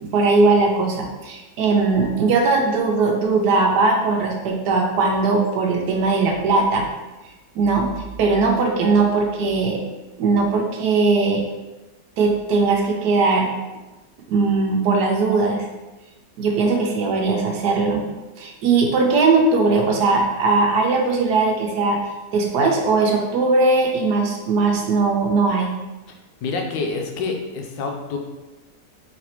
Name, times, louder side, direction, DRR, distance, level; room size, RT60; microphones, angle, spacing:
voice 1, 0.0-6.9 7.5-7.9 8.2-9.8 10.2-11.4 12.2-13.5 14.3-15.7 16.4-18.1 18.4-22.0 22.3-25.7, right 3 dB, 75° right, 1 dB, 1.2 m, -19 dB
voice 2, 26.4-28.2, left 4 dB, 85° left, 3 dB, 1.3 m, -27 dB
4.1 x 3.2 x 2.9 m, 1.1 s
omnidirectional pair, 1.9 m